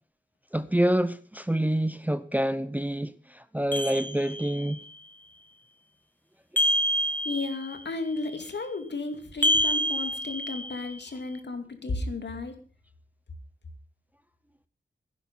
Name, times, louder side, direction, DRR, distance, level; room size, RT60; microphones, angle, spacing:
voice 1, 0.5-4.8, right 1 dB, 10° right, 0.6 m, -27 dB
sound 1, 3.7-4.7 6.6-7.8 9.4-10.9, equal, 10° left, 2.1 m, -27 dB
voice 2, 7.2-12.5, left 3 dB, 65° left, 2.6 m, -33 dB
16.0 x 10.5 x 5.6 m
wide cardioid pair, 115°, 19 cm